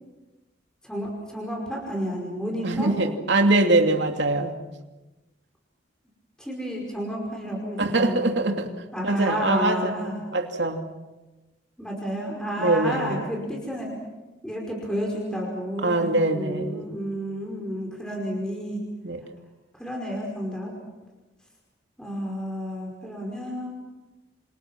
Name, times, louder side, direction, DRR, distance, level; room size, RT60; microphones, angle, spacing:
voice 1, 0.8-2.9 6.4-8.5 8.9-10.2 11.8-13.9 14.4-18.8 19.8-20.7 22.0-23.7, equal, 5° left, -1 dB, 5.2 m, -31 dB
voice 2, 2.6-4.6 7.8-8.7 9.0-10.8 12.6-13.3 15.8-16.9 19.0-19.2, right 2 dB, 70° right, 3 dB, 2.6 m, -23 dB
28.5 x 27.0 x 6.1 m, 1.1 s
head